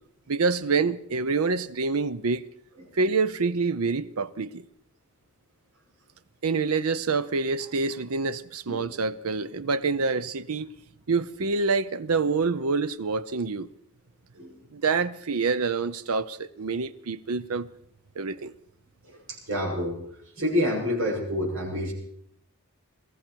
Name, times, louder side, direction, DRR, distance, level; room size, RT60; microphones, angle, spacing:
voice 1, 0.3-2.4 3.0-4.6 6.4-10.7 11.1-13.7 14.7-17.7 18.2-18.5, right 4 dB, 85° right, 0.7 m, -26 dB
voice 2, 19.0-20.0 20.4-21.9, left 1 dB, 65° right, 6.6 m, -28 dB
22.0 x 14.5 x 4.6 m
head